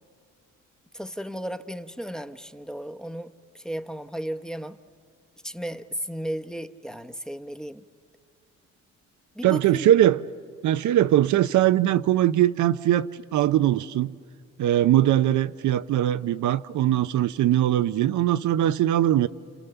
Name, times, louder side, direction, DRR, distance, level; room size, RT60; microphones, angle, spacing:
voice 1, 0.9-4.8 5.4-7.8 9.4-9.9, equal, ahead, 0.9 m, -34 dB
voice 2, 9.4-10.2 10.6-14.1 14.6-19.3, right 12 dB, 75° right, 0.7 m, -21 dB
30.0 x 28.0 x 6.9 m
cardioid pair, 90°, 30 cm